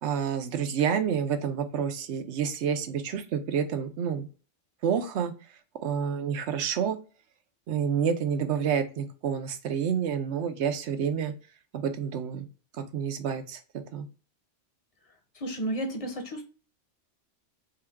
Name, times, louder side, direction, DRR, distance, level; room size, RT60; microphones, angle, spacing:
voice 1, 0.0-4.3 4.8-5.3 5.8-7.0 7.7-11.3 11.7-12.5 12.7-14.1, right 7 dB, 70° right, 8 dB, 0.9 m, -29 dB
voice 2, 15.3-16.5, right 1 dB, 35° left, 4 dB, 0.7 m, -32 dB
3.8 x 2.3 x 3.4 m, 0.37 s
omnidirectional pair, 1.3 m